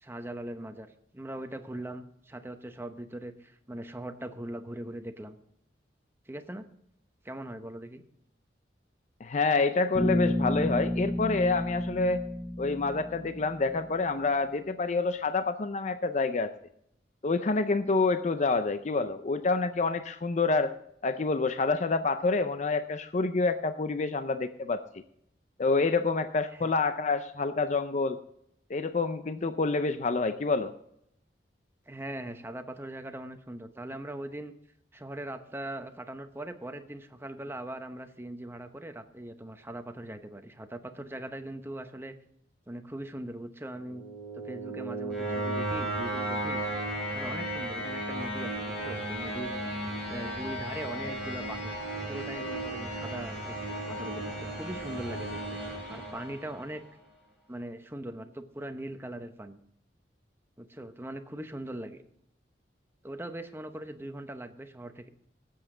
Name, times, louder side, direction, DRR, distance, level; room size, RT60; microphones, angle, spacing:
voice 1, 0.0-5.4 6.3-6.7 7.2-8.0 26.5-26.7 31.9-34.5 34.9-42.1 42.7-44.0 44.3-46.6 47.1-49.6 50.1-51.8 52.1-55.6 55.9-56.8 57.5-59.6 60.6-62.0 63.0-65.1, right 1 dB, 15° right, 8 dB, 0.9 m, -40 dB
voice 2, 9.2-12.2 12.6-16.5 17.2-20.7 21.0-24.8 25.6-28.2 28.7-30.7, left 3 dB, 40° left, 10 dB, 0.5 m, -27 dB
Bass guitar, 9.9-13.8, left 1 dB, 80° left, 4.2 m, -31 dB
sound 1, 43.8-56.8, right 1 dB, 5° left, 5.4 m, -35 dB
17.5 x 8.0 x 3.8 m, 0.74 s
head